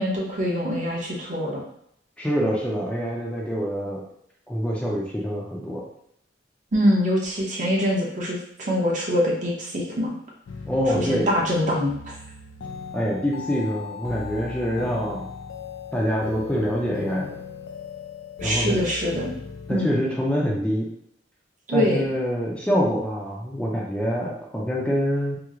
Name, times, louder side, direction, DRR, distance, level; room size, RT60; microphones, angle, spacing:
voice 1, 0.0-1.6 6.7-10.1 10.9-12.2 18.4-19.4 19.7-20.0 21.7-22.0, equal, 45° right, -3 dB, 0.8 m, -24 dB
voice 2, 2.2-4.0 4.5-5.8 10.7-11.3 12.9-15.3 15.9-17.3 18.4-18.8 19.7-20.9 21.7-25.4, equal, 5° left, -3 dB, 0.4 m, -25 dB
sound 1, 10.5-19.8, left 5 dB, 80° left, 0.3 m, -38 dB
3.0 x 2.0 x 3.6 m, 0.72 s
head